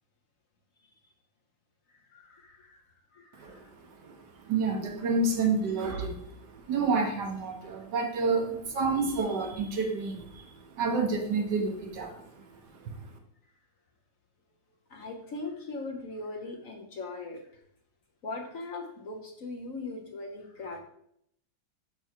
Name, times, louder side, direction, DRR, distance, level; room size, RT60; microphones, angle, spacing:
voice 1, 1.9-2.8 3.1-3.7 14.9-17.4 18.2-20.8, left 3 dB, 55° left, 1 dB, 1.1 m, -40 dB
voice 2, 3.3-13.1, right 4 dB, 65° right, 3 dB, 1.6 m, -30 dB
6.1 x 5.7 x 4.5 m, 0.73 s
omnidirectional pair, 2.0 m